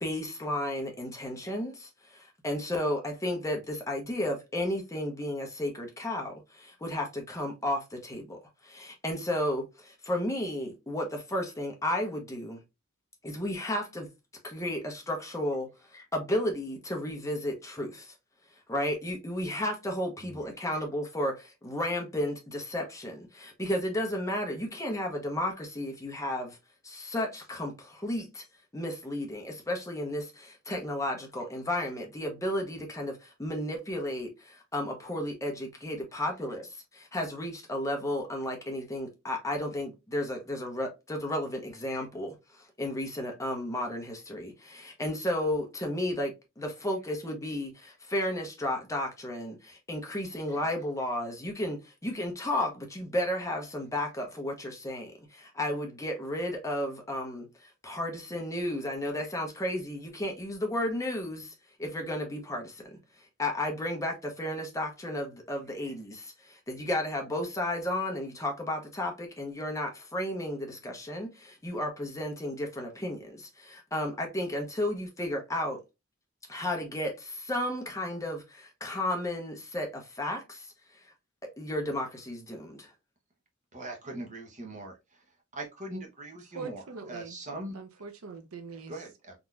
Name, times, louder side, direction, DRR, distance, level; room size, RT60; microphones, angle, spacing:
voice 1, 0.0-12.6 13.2-14.1 14.4-18.1 18.7-26.6 26.8-28.4 28.7-63.0 63.4-75.8 76.5-80.7 81.6-82.9, left 1 dB, 15° left, 0.9 m, -33 dB
voice 2, 83.7-85.2 85.5-87.8 88.9-89.3, right 1 dB, 35° right, 1.0 m, -41 dB
voice 3, 86.5-87.4 87.7-88.9, right 5 dB, 75° right, 0.6 m, -42 dB
3.8 x 3.0 x 2.4 m
head